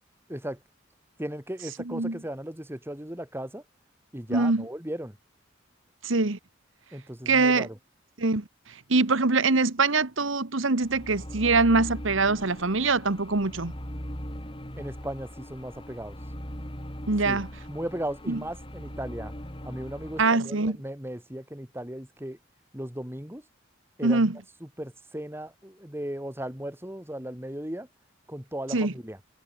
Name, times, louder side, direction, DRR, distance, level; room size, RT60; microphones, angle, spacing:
voice 1, 0.3-0.6 1.2-3.6 4.1-5.2 6.9-7.8 14.8-16.2 17.2-17.4 17.7-19.3 19.6-22.4 22.7-23.4 24.0-27.9 28.3-29.2, right 1 dB, 10° right, 2.6 m, -36 dB
voice 2, 4.3-4.6 6.0-6.4 7.3-7.7 8.2-13.7 17.1-17.5 18.3-18.4 20.2-20.8 24.0-24.3 28.7-28.9, right 3 dB, 70° right, 1.5 m, -23 dB
sound 1, 10.8-20.3, equal, 25° left, 7.0 m, -40 dB
head